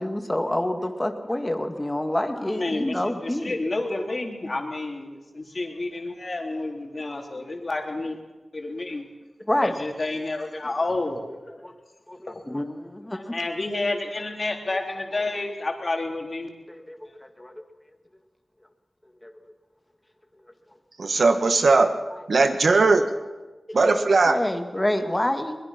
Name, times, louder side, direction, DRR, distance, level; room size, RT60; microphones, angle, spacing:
voice 1, 0.0-3.5 9.5-9.7 11.6-11.7 12.1-13.3 16.7-17.5 19.2-19.3 23.7-24.0 24.3-25.6, left 1 dB, 20° left, 6 dB, 2.1 m, -27 dB
voice 2, 2.4-8.2 8.5-9.1 9.6-11.4 12.3-12.5 13.1-16.5, left 2 dB, 50° left, 1 dB, 3.8 m, -30 dB
voice 3, 21.0-21.9 22.3-23.1 23.7-24.4, right 3 dB, 75° right, 8 dB, 1.6 m, -18 dB
23.0 x 21.5 x 6.0 m, 1.2 s
wide cardioid pair, 60°, 0 cm